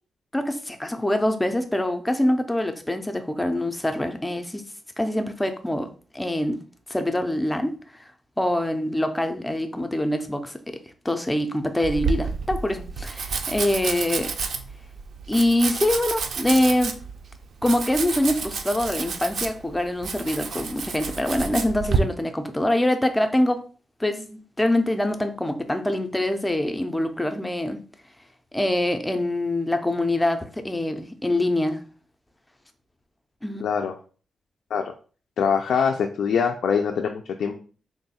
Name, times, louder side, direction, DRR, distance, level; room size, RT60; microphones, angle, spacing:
voice 1, 0.3-4.6 5.0-6.6 6.9-7.8 8.4-10.8 11.0-14.3 15.3-17.0 17.6-23.6 24.0-27.8 28.5-31.8 33.4-33.6, left 1 dB, 10° left, 0.4 m, -24 dB
Domestic sounds home sounds, 11.8-22.0, right 5 dB, 65° right, 0.4 m, -30 dB
voice 2, 33.6-33.9 34.7-34.8 35.4-37.6, left 6 dB, 80° left, 0.3 m, -23 dB
3.5 x 2.3 x 4.0 m
wide cardioid pair, 165°, 0 cm